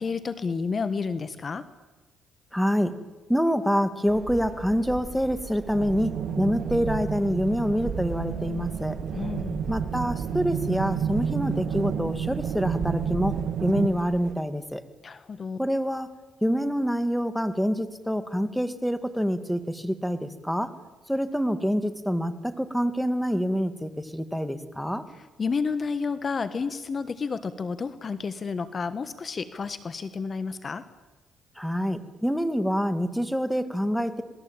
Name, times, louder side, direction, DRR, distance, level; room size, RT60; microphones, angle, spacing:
voice 1, 0.0-1.7 9.1-9.6 15.0-15.6 25.1-30.8, left 5 dB, 40° left, 13 dB, 1.3 m, -31 dB
voice 2, 2.5-2.9 3.3-9.0 9.7-14.8 15.6-16.1 16.4-20.7 21.1-25.0 31.6-34.2, equal, ahead, 11 dB, 2.2 m, -26 dB
sound 1, 4.0-14.3, right 5 dB, 45° right, 1.8 m, -39 dB
sound 2, 5.7-13.9, right 8 dB, 70° right, 1.6 m, -31 dB
27.5 x 20.0 x 8.9 m, 1.1 s
cardioid pair, 90°, 0 cm